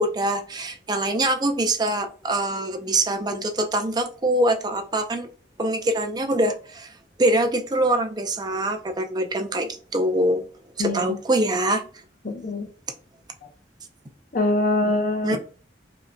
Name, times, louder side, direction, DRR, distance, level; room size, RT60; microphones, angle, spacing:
voice 1, 0.0-5.3 5.6-6.9 7.2-10.5 10.8-11.8 15.2-15.4, right 1 dB, 25° right, 0.5 m, -24 dB
voice 2, 12.2-12.7 14.3-15.4, left 2 dB, 50° left, 0.8 m, -23 dB
5.0 x 2.7 x 2.2 m
head